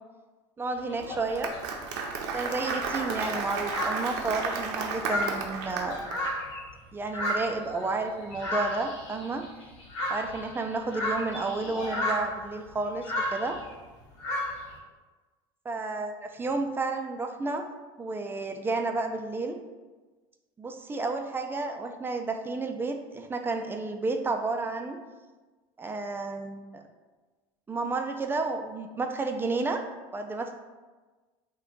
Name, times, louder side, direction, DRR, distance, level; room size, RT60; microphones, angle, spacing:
voice 1, 0.6-1.5 2.3-6.0 6.9-9.4 10.1-13.6 15.7-17.6 18.0-19.6 20.6-25.0 25.8-26.8 27.7-29.8 30.1-30.5, right 3 dB, 15° right, 5 dB, 0.3 m, -31 dB
sound 1, 0.8-1.6 2.3-2.4 2.6-6.7 7.1-13.7 14.2-14.7, left 1 dB, 85° left, 0.8 m, -33 dB
Applause, 1.0-6.2, right 4 dB, 70° right, 0.5 m, -33 dB
2.5 x 2.2 x 3.8 m, 1.3 s
hypercardioid pair, 90°, 15 cm